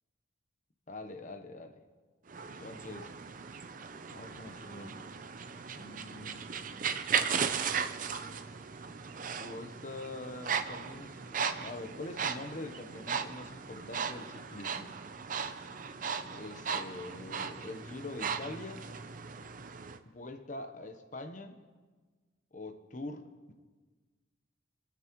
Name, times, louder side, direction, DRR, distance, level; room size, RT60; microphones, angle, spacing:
voice 1, 0.9-1.8 2.6-3.1 4.1-5.1 5.7-6.5 9.3-14.9 16.3-18.8 20.0-21.6 22.5-23.5, left 2 dB, 40° left, 6 dB, 1.0 m, -44 dB
sound 1, 2.3-20.0, right 6 dB, 45° right, 0.6 m, -37 dB
28.0 x 9.4 x 3.1 m, 1.4 s
head